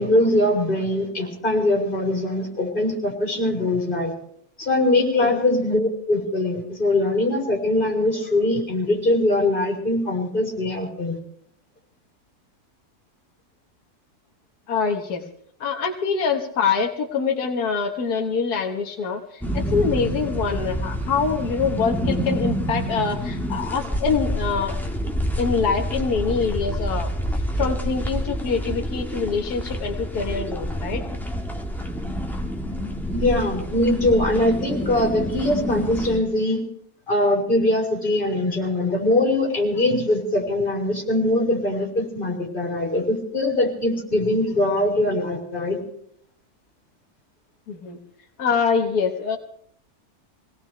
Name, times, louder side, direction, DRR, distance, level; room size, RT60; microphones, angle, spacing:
voice 1, 0.0-4.1 4.6-11.2 33.1-36.6 37.1-45.8, left 1 dB, 35° left, -1 dB, 3.9 m, -22 dB
voice 2, 14.7-15.2 15.6-24.8 25.4-27.1 27.6-31.0 47.7-48.0 48.4-49.4, left 5 dB, 90° left, 3 dB, 1.7 m, -25 dB
sound 1, 19.4-36.2, equal, ahead, 1.5 m, -28 dB
24.5 x 17.5 x 3.3 m, 0.65 s
omnidirectional pair, 1.6 m